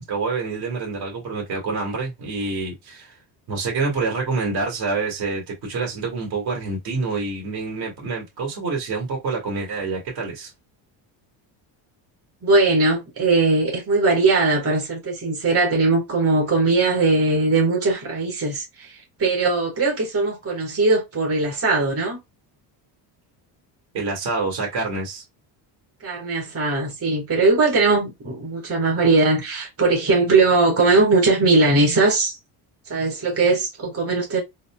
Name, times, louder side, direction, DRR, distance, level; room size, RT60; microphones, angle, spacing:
voice 1, 0.0-3.1 3.5-10.5 23.9-25.2, right 4 dB, 65° right, 1.8 m, -27 dB
voice 2, 12.4-18.9 19.2-22.2 26.0-32.4 32.9-34.4, right 3 dB, 30° right, 1.6 m, -20 dB
4.0 x 2.0 x 2.3 m
cardioid pair, 120°, 43 cm